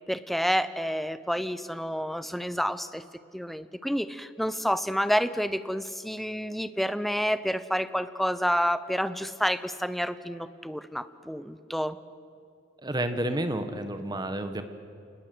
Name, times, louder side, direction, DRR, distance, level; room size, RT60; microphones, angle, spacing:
voice 1, 0.1-3.0 3.3-12.0, equal, ahead, 13 dB, 0.7 m, -29 dB
voice 2, 12.8-14.6, right 1 dB, 20° right, 9 dB, 1.5 m, -30 dB
28.0 x 20.0 x 7.9 m, 2.5 s
head